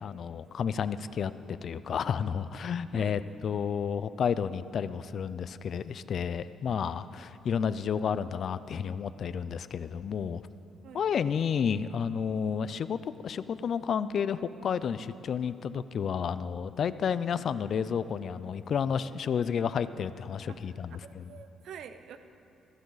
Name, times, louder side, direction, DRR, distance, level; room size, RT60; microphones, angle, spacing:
voice 1, 0.0-10.4 10.9-21.4, left 7 dB, 55° left, 14 dB, 0.4 m, -31 dB
voice 2, 20.5-22.2, right 8 dB, 70° right, 10 dB, 0.7 m, -47 dB
15.0 x 14.5 x 4.0 m, 2.8 s
cardioid pair, 110°, 0 cm